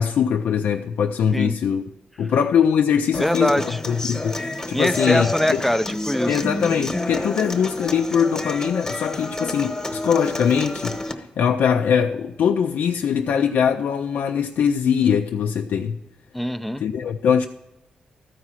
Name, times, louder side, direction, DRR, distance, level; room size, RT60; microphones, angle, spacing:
voice 1, 0.0-1.8 2.2-5.6 6.3-16.0 16.8-17.5, left 7 dB, 80° left, 0.4 m, -22 dB
Human voice / Acoustic guitar, 3.1-11.1, left 2 dB, 20° left, 1.0 m, -29 dB
voice 2, 3.2-3.8 4.7-6.4 16.3-16.8, equal, 5° left, 0.4 m, -23 dB
13.5 x 4.8 x 5.7 m
cardioid pair, 95°, 3 cm